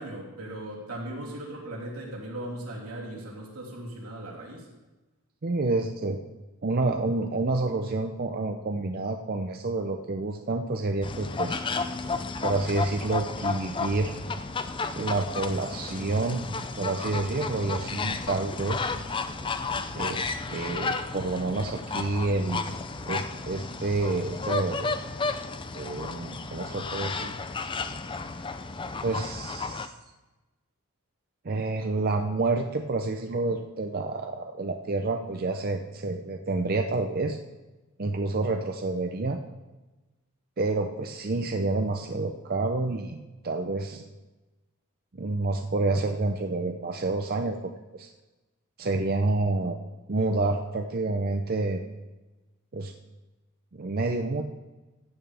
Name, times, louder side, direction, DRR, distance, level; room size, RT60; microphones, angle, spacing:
voice 1, 0.0-4.7, right 1 dB, 85° right, -3 dB, 3.0 m, -38 dB
voice 2, 5.4-6.2 6.6-11.6 12.4-14.1 15.0-16.4 16.8-18.8 19.9-22.7 23.1-25.0 25.7-27.3 29.0-29.9 31.4-37.4 38.0-39.4 40.6-43.2 43.4-44.0 45.2-47.7 48.0-48.1 48.8-49.8 50.1-51.8 52.7-52.9 53.7-54.4, right 3 dB, 45° right, 4 dB, 0.6 m, -28 dB
sound 1, 11.0-29.9, left 4 dB, 20° left, 0.4 m, -33 dB
14.5 x 9.0 x 3.4 m, 1.1 s
head